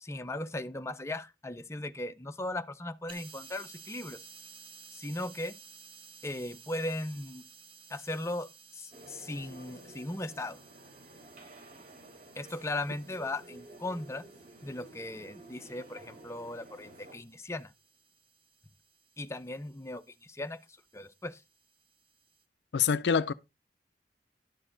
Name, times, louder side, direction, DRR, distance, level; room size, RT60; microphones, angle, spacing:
voice 1, 0.0-4.2 4.9-5.5 6.2-7.4 7.9-10.6 12.4-14.2 14.6-17.7 19.2-20.6 20.9-21.4, left 1 dB, 15° left, 0.6 m, -38 dB
sound 1, 3.1-22.4, right 5 dB, 30° right, 1.4 m, -56 dB
sound 2, 8.9-17.3, right 1 dB, 45° right, 3.9 m, -52 dB
voice 2, 22.7-23.3, left 6 dB, 70° left, 0.5 m, -25 dB
11.0 x 6.6 x 3.8 m
head